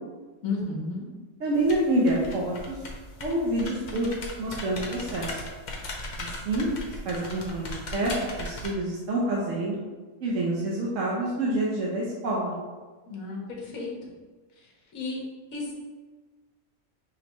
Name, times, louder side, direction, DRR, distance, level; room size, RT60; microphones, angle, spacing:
voice 1, 0.4-1.0 13.1-14.1 14.9-15.2 15.5-15.7, left 3 dB, 75° left, -2 dB, 1.4 m, -33 dB
voice 2, 1.4-2.8 3.2-4.1 4.4-5.4 6.4-8.1 8.4-9.7 10.2-12.5, right 1 dB, 70° right, -4 dB, 1.1 m, -27 dB
sound 1, 1.5-8.7, left 1 dB, 45° left, 0.6 m, -38 dB
5.2 x 3.3 x 3.0 m, 1.3 s
omnidirectional pair, 1.4 m